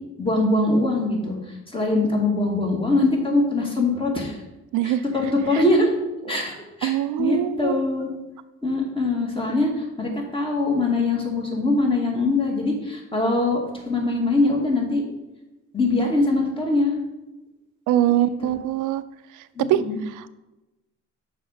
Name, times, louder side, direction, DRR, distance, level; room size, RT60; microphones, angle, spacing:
voice 1, 0.2-4.4 4.8-5.9 6.3-6.5 6.8-8.1 8.6-15.0 15.7-16.9 18.1-18.5 19.5-20.0, left 2 dB, 15° left, -1 dB, 2.2 m, -23 dB
voice 2, 6.8-7.8 17.9-19.0 19.7-20.3, right 12 dB, 90° right, 14 dB, 0.5 m, -23 dB
6.5 x 5.0 x 5.8 m, 1.0 s
cardioid pair, 90°, 30 cm